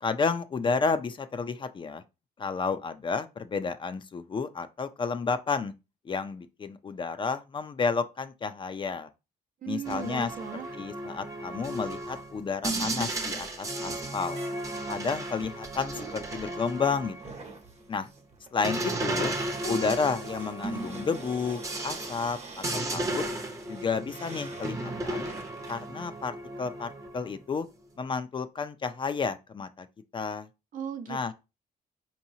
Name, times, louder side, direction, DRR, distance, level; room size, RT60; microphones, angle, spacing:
voice 1, 0.0-2.0 2.4-5.7 6.1-9.1 9.7-10.3 10.7-14.4 14.9-17.3 17.9-18.1 18.5-19.3 19.7-22.4 22.7-23.2 23.7-25.3 25.7-27.7 28.0-29.9 30.1-30.5 31.1-31.3, left 5 dB, 30° left, 0.4 m, -31 dB
voice 2, 9.6-10.7 30.7-31.3, right 8 dB, 60° right, 0.7 m, -37 dB
sound 1, 9.8-17.5 18.6-27.4, right 2 dB, 20° right, 0.7 m, -35 dB
sound 2, 12.9-25.9, right 3 dB, 45° right, 1.0 m, -47 dB
Piano, 19.6-24.5 26.1-26.9, left 3 dB, 70° left, 0.7 m, -47 dB
4.6 x 2.9 x 2.7 m
cardioid pair, 110°, 16 cm